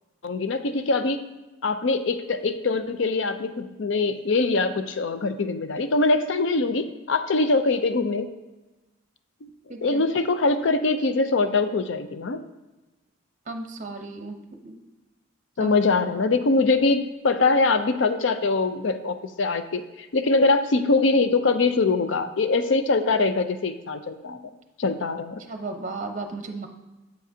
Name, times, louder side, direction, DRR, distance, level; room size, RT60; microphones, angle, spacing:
voice 1, 0.2-1.2 1.6-8.3 9.4-9.5 9.8-12.4 15.6-24.4 24.8-25.4, left 3 dB, 65° left, 10 dB, 0.5 m, -23 dB
voice 2, 9.7-10.0 13.5-14.4 14.6-14.7 15.6-15.8 25.5-26.7, right 3 dB, 40° right, 4 dB, 0.7 m, -34 dB
7.8 x 7.4 x 2.7 m, 1.1 s
head